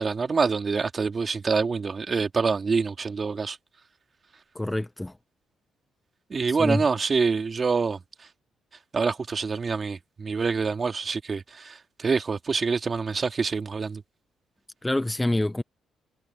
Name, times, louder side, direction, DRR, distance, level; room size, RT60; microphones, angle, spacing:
voice 1, 0.0-3.6 6.3-8.0 8.9-11.7 12.0-14.0, right 5 dB, 35° right, 2.5 m, -26 dB
voice 2, 4.5-5.1 6.5-6.8 14.8-15.6, left 1 dB, 10° left, 0.7 m, -26 dB
cardioid pair, 90°, 0 cm